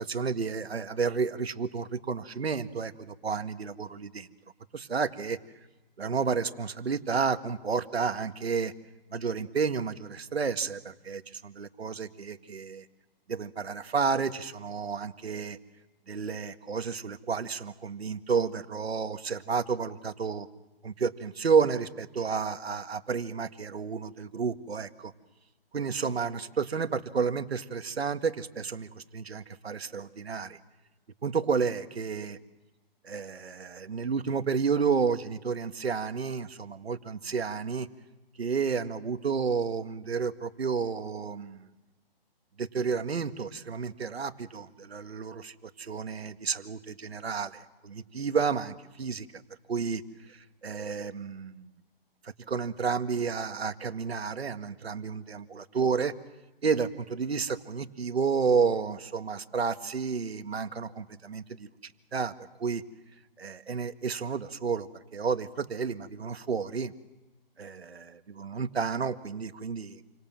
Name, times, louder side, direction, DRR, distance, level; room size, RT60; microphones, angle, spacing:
voice 1, 0.0-4.3 4.7-5.4 6.0-8.7 9.1-12.9 13.3-15.6 16.1-20.5 20.8-25.1 25.7-30.6 31.2-32.4 33.0-37.9 38.4-41.6 42.6-49.4 49.7-50.0 50.3-51.7 52.2-56.1 56.6-62.3 62.6-62.8 63.4-66.9 67.6-70.0, right 5 dB, 90° right, 9 dB, 2.0 m, -31 dB
29.0 x 24.5 x 7.6 m, 1.1 s
hypercardioid pair, 180°, 30 cm